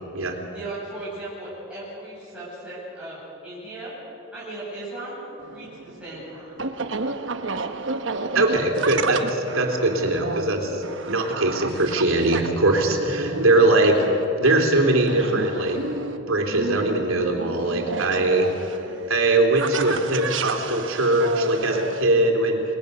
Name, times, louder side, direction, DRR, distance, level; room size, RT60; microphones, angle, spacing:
voice 1, 0.5-3.9 4.3-5.1 5.4-6.5, right 2 dB, 5° right, -10 dB, 8.0 m, -37 dB
sound 1, 5.4-22.0, right 3 dB, 65° right, 1.1 m, -31 dB
voice 2, 8.3-14.0 14.4-15.8 16.3-18.8 19.1-22.6, right 2 dB, 85° right, 2 dB, 3.5 m, -21 dB
29.5 x 21.0 x 6.9 m, 2.9 s
head